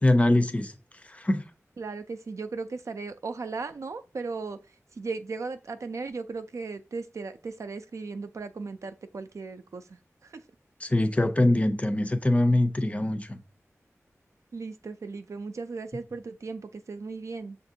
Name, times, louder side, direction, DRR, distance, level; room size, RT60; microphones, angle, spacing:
voice 1, 0.0-0.7 1.0-1.5 10.8-13.4, left 1 dB, 25° left, 0.5 m, -23 dB
voice 2, 1.8-4.6 5.0-10.4 14.5-17.6, right 4 dB, 75° right, 0.4 m, -37 dB
6.5 x 2.5 x 2.7 m
wide cardioid pair, 85°, 5 cm